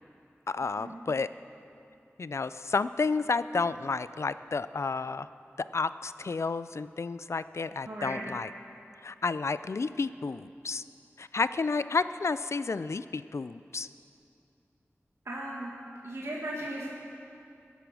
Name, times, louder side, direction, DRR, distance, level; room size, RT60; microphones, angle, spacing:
voice 1, 0.5-1.3 2.2-5.3 5.7-8.5 9.0-10.8 11.2-13.9, left 4 dB, 70° left, 14 dB, 0.4 m, -31 dB
voice 2, 7.9-8.3 15.3-15.7 16.0-16.9, right 1 dB, 65° right, -5 dB, 2.2 m, -36 dB
21.5 x 8.3 x 6.2 m, 2.7 s
wide cardioid pair, 60°, 5 cm